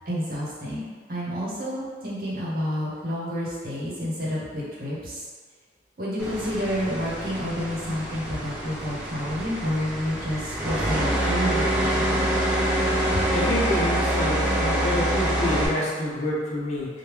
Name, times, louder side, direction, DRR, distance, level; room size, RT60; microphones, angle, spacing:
voice 1, 0.1-0.8 1.1-5.2 6.0-12.3 13.1-13.3, equal, 55° right, -7 dB, 0.9 m, -29 dB
sound 1, 6.2-15.7, right 1 dB, 5° right, 0.4 m, -26 dB
voice 2, 13.3-16.9, left 1 dB, 40° left, -5 dB, 0.6 m, -27 dB
3.0 x 2.2 x 3.3 m, 1.5 s
head